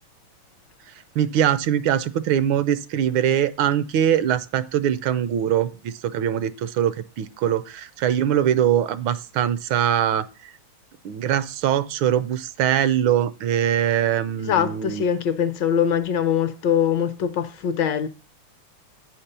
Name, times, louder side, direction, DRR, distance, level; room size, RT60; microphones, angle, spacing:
voice 1, 1.1-10.5 11.0-15.0, right 10 dB, 80° right, 1.4 m, -22 dB
voice 2, 14.4-18.1, left 8 dB, 70° left, 1.3 m, -22 dB
9.3 x 4.4 x 6.6 m
omnidirectional pair, 2.2 m